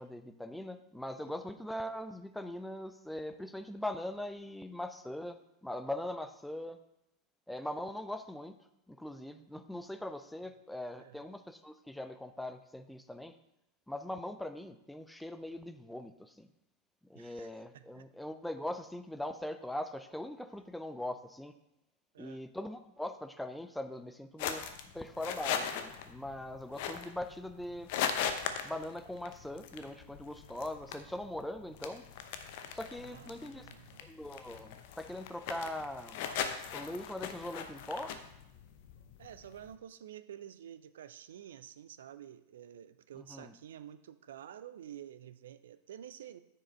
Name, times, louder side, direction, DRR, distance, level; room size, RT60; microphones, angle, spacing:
voice 1, 0.0-6.8 7.5-13.3 13.9-16.5 17.1-21.5 22.2-24.7 24.9-27.9 28.6-32.0 32.7-33.7 34.0-36.3 36.7-38.2 43.2-43.5, left 1 dB, 5° left, 8 dB, 0.5 m, -41 dB
voice 2, 17.1-18.1 22.1-22.4 33.0-34.0 39.2-46.4, right 10 dB, 60° right, 14 dB, 0.4 m, -50 dB
sound 1, 24.4-39.7, left 8 dB, 50° left, 0.7 m, -40 dB
9.8 x 4.8 x 4.4 m, 0.85 s
figure-of-eight pair, 90°, 0 cm